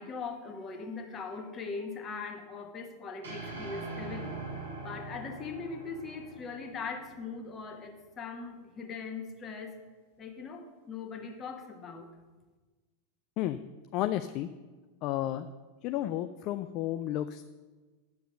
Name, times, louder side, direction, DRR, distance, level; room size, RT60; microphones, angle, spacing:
voice 1, 0.0-4.4 4.8-9.7 10.2-12.1, left 4 dB, 25° left, 5 dB, 1.4 m, -40 dB
sound 1, 3.2-7.6, right 3 dB, 70° right, 3.2 m, -42 dB
voice 2, 13.9-14.5 15.0-15.5 15.8-17.4, left 13 dB, 40° left, 10 dB, 0.4 m, -32 dB
9.5 x 6.7 x 6.3 m, 1.3 s
figure-of-eight pair, 90°, 0 cm